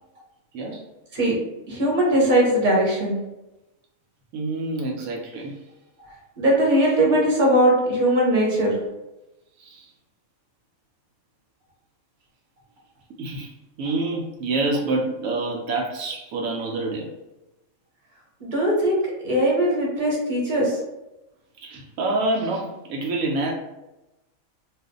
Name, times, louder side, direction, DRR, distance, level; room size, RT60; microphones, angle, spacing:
voice 1, 0.5-0.9 4.3-5.6 9.6-9.9 13.2-13.5 13.8-17.1 21.6-23.5, right 2 dB, 80° right, 0 dB, 1.0 m, -27 dB
voice 2, 1.7-3.2 6.4-8.8 18.4-20.8, right 1 dB, 40° right, -4 dB, 1.0 m, -20 dB
2.5 x 2.4 x 3.7 m, 0.96 s
omnidirectional pair, 1.5 m